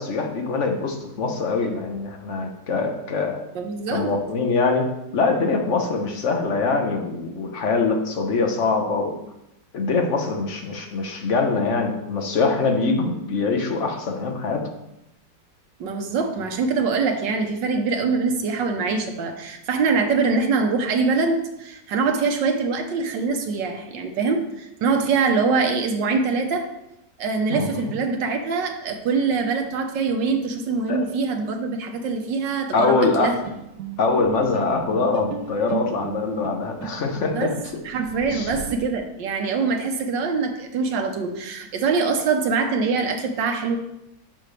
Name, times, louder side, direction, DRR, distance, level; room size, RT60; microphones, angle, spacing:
voice 1, 0.0-3.4 3.9-9.1 9.7-14.6 27.5-27.7 30.9-31.0 32.7-33.3 34.0-37.5 38.3-38.6, left 4 dB, 50° left, 3 dB, 1.2 m, -23 dB
voice 2, 3.5-4.1 15.8-26.7 27.2-33.4 37.3-37.5 37.8-43.8, right 4 dB, 90° right, 4 dB, 1.6 m, -24 dB
sound 1, 33.1-38.8, right 6 dB, 60° right, 1.1 m, -36 dB
10.0 x 6.1 x 3.3 m, 0.88 s
omnidirectional pair, 1.9 m